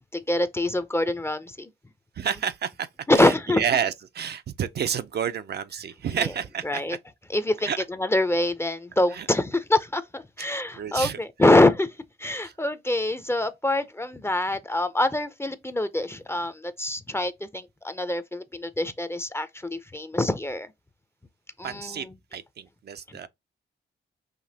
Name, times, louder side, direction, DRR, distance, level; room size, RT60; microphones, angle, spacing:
voice 1, 0.1-1.7 3.1-3.6 6.2-6.3 6.6-7.0 7.3-20.7 21.6-22.2 23.1-23.2, left 1 dB, 10° left, 0.5 m, -25 dB
voice 2, 2.2-2.9 3.1-6.8 7.7-7.8 9.2-9.3 10.8-11.2 12.4-12.5 21.6-22.1 22.3-23.3, right 8 dB, 55° right, 0.5 m, -29 dB
5.0 x 2.9 x 2.7 m
cardioid pair, 110°, 20 cm